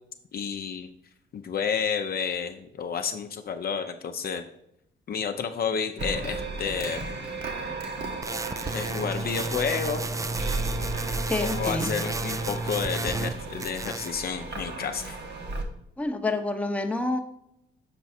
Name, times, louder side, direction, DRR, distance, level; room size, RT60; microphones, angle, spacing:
voice 1, 0.3-0.9 1.3-4.5 5.1-7.0 8.7-10.0 11.4-15.2, left 6 dB, 50° left, 6 dB, 0.6 m, -30 dB
sound 1, 6.0-15.6, right 3 dB, 55° right, 1.3 m, -35 dB
sound 2, 8.2-13.3 13.6-14.2, right 2 dB, 15° right, 0.4 m, -32 dB
voice 2, 11.3-11.9 16.0-17.2, left 2 dB, 5° left, 4 dB, 0.8 m, -28 dB
6.8 x 4.6 x 4.3 m, 0.78 s
cardioid pair, 90°, 20 cm